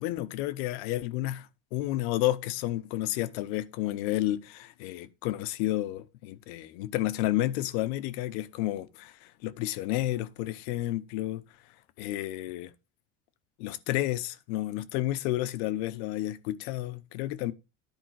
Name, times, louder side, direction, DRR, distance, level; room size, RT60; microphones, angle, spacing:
voice 1, 0.0-11.4 12.0-12.7 13.6-17.5, left 15 dB, 80° left, 0.9 m, -31 dB
10.5 x 4.8 x 4.7 m
cardioid pair, 160°, 31 cm